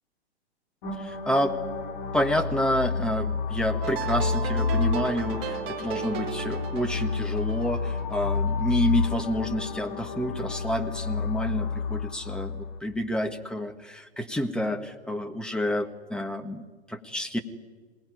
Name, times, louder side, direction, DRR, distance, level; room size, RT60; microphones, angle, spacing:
sound 1, 0.8-12.8, left 5 dB, 45° left, 3.5 m, -30 dB
voice 1, 1.0-1.6 2.1-17.4, equal, ahead, 5 dB, 1.5 m, -29 dB
sound 2, 3.8-8.9, right 10 dB, 30° right, 4.1 m, -36 dB
26.5 x 18.5 x 9.9 m, 1.4 s
figure-of-eight pair, 110°, 33 cm